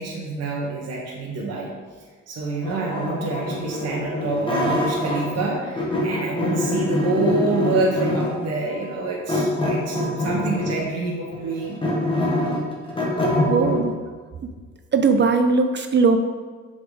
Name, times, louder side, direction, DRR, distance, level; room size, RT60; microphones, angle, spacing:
voice 1, 0.0-1.7 2.3-11.8, right 3 dB, 55° right, -3 dB, 1.2 m, -27 dB
sound 1, 2.6-5.5 5.8-8.5 9.3-10.9 11.3-13.8, left 1 dB, 15° left, 1.5 m, -24 dB
voice 2, 13.1-13.9 14.9-16.2, right 4 dB, 40° right, 7 dB, 0.5 m, -19 dB
6.9 x 3.9 x 3.8 m, 1.5 s
cardioid pair, 90°, 30 cm